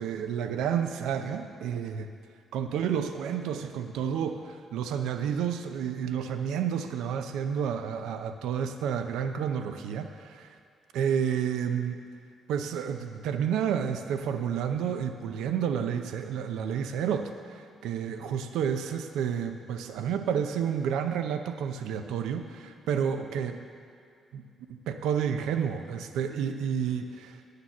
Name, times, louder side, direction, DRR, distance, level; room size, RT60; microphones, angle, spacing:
voice 1, 0.0-2.1 2.5-10.6 10.9-12.0 12.5-23.6 24.3-24.4 24.7-27.4, right 8 dB, 90° right, 7 dB, 0.6 m, -30 dB
9.3 x 6.6 x 7.2 m, 2.3 s
cardioid pair, 90°, 0 cm